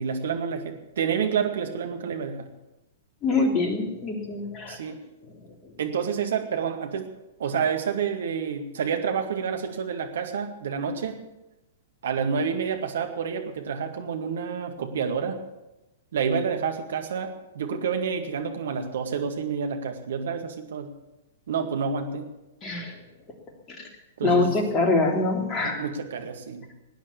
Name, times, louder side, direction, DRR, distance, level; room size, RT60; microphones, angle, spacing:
voice 1, 0.0-2.4 4.7-5.0 5.8-7.1 7.4-11.2 12.0-15.4 16.1-20.9 21.5-22.2 24.2-24.5 25.6-26.7, right 6 dB, 60° right, 5 dB, 2.1 m, -28 dB
voice 2, 3.2-4.8 22.6-22.9 24.2-25.8, left 3 dB, 25° left, 2 dB, 3.0 m, -24 dB
18.5 x 9.7 x 7.1 m, 0.99 s
figure-of-eight pair, 105°, 0 cm